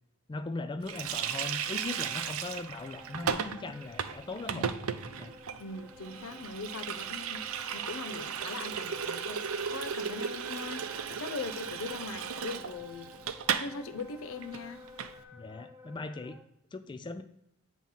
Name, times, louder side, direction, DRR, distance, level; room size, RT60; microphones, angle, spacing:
voice 1, 0.3-4.7 5.2-5.3 15.3-16.4 16.7-17.2, left 3 dB, 20° left, 8 dB, 0.3 m, -39 dB
Water tap faucet, 0.9-13.7 14.0-14.1 14.4-15.1, right 7 dB, 85° right, 0.5 m, -36 dB
Wind instrument woodwind instrument, 1.0-16.5, left 1 dB, 10° right, 0.8 m, -52 dB
voice 2, 5.6-7.5 7.7-13.1 13.6-14.8, left 4 dB, 75° left, 11 dB, 0.5 m, -41 dB
8.8 x 3.0 x 5.5 m, 0.79 s
head